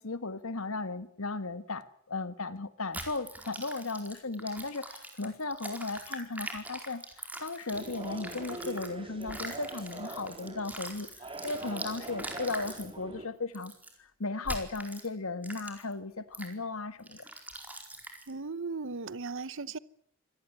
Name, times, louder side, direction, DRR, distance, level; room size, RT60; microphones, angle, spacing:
voice 1, 0.0-7.0 7.4-13.7 14.2-17.3, left 3 dB, 85° left, 1.7 m, -36 dB
sound 1, 2.9-8.9 9.2-12.9 13.5-13.9 14.4-15.1 15.4-15.9 16.3-16.5 17.1-18.3, right 1 dB, 10° right, 4.5 m, -43 dB
sound 2, 7.7-13.3, right 2 dB, 25° right, 3.5 m, -43 dB
voice 2, 18.3-19.8, right 4 dB, 65° right, 0.9 m, -37 dB
25.5 x 17.5 x 9.6 m
head